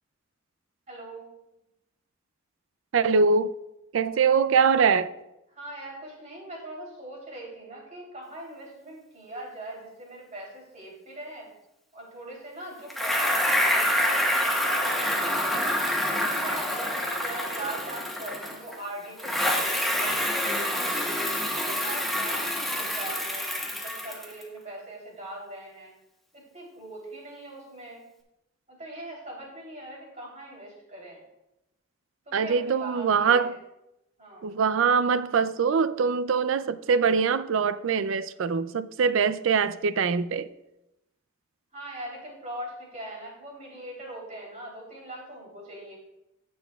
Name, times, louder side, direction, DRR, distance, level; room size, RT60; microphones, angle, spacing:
voice 1, 0.9-1.3 5.5-11.5 11.9-15.7 16.1-21.1 21.6-25.9 26.5-28.0 28.7-31.2 32.3-33.4 34.2-34.5 41.7-46.0, right 1 dB, 35° right, 3.2 m, -41 dB
voice 2, 2.9-3.5 3.9-5.1 32.3-33.6 34.4-40.5, right 5 dB, 70° right, 0.4 m, -23 dB
Bicycle, 12.9-18.8 19.2-24.4, equal, ahead, 1.3 m, -27 dB
17.0 x 6.2 x 2.3 m
head